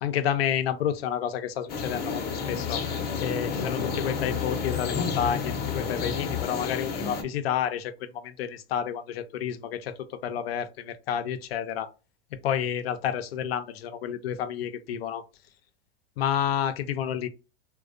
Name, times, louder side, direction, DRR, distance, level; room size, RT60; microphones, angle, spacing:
voice 1, 0.0-2.8 3.2-11.9 12.4-15.3 16.2-17.3, left 9 dB, 85° left, 0.5 m, -30 dB
sound 1, 1.7-7.2, left 6 dB, 35° left, 0.6 m, -30 dB
2.4 x 2.2 x 2.4 m
hypercardioid pair, 110°, 29 cm